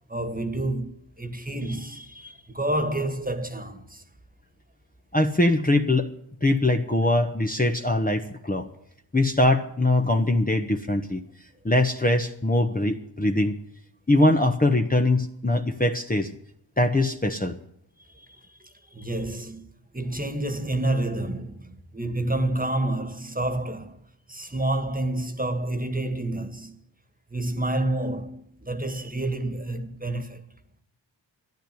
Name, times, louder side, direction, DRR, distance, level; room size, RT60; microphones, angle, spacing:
voice 1, 0.1-4.0 18.2-19.7 19.9-24.0 24.3-26.8 27.3-30.4, right 1 dB, 15° right, 1.9 m, -29 dB
voice 2, 5.1-6.1 6.4-8.7 9.1-11.2 11.6-13.5 14.1-16.3 16.8-17.6, left 1 dB, 15° left, 1.2 m, -22 dB
13.5 x 10.0 x 9.4 m
cardioid pair, 45°, 49 cm